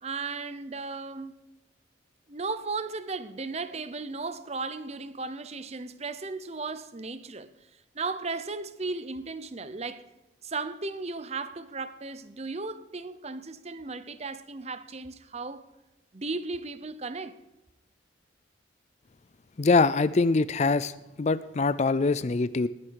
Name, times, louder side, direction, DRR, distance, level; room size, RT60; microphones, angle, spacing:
voice 1, 0.0-1.3 2.3-7.5 7.9-10.1 10.4-15.7 16.1-17.4, right 3 dB, 30° right, 0.8 m, -35 dB
voice 2, 19.6-20.9 21.2-22.7, left 3 dB, 35° left, 0.4 m, -23 dB
20.0 x 9.8 x 4.7 m
head